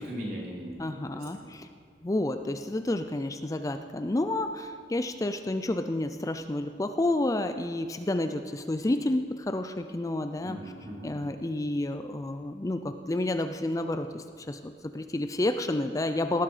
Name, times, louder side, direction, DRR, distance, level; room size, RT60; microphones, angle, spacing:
voice 1, 0.0-1.5 10.4-11.1, equal, 55° right, -4 dB, 4.0 m, -39 dB
voice 2, 0.8-1.7 2.0-10.7 11.0-16.4, left 1 dB, 20° left, 8 dB, 0.4 m, -30 dB
18.0 x 11.0 x 5.0 m, 2.1 s
head